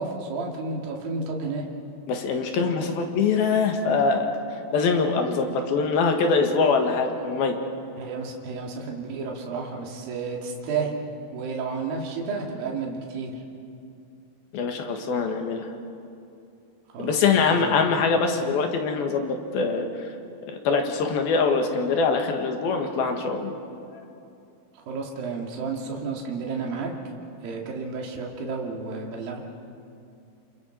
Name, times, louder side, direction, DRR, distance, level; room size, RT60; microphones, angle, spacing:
voice 1, 0.0-1.6 8.0-11.0 11.3-13.3 16.9-17.9 24.9-26.9 27.4-29.4, right 4 dB, 70° right, 0 dB, 3.9 m, -31 dB
voice 2, 2.1-4.3 4.7-7.6 14.5-15.7 17.0-19.9 20.5-23.5 23.9-24.0, left 4 dB, 75° left, 4 dB, 3.5 m, -23 dB
29.0 x 28.0 x 4.6 m, 2.6 s
omnidirectional pair, 4.4 m